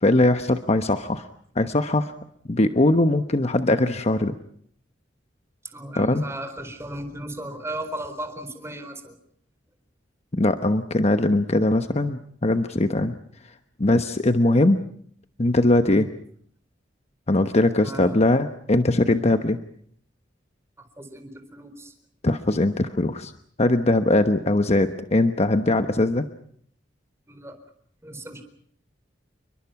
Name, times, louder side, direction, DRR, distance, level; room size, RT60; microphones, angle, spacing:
voice 1, 0.0-1.2 1.5-2.1 2.5-4.4 5.9-6.2 10.3-13.1 13.8-14.8 15.4-16.1 17.3-19.6 22.2-23.3 23.6-26.2, left 2 dB, 35° left, 8 dB, 1.1 m, -21 dB
voice 2, 5.6-9.1 15.9-16.1 17.8-18.3 20.8-21.9 27.3-27.6 28.0-28.4, right 1 dB, 15° right, 8 dB, 4.2 m, -36 dB
29.5 x 23.0 x 6.0 m, 0.64 s
head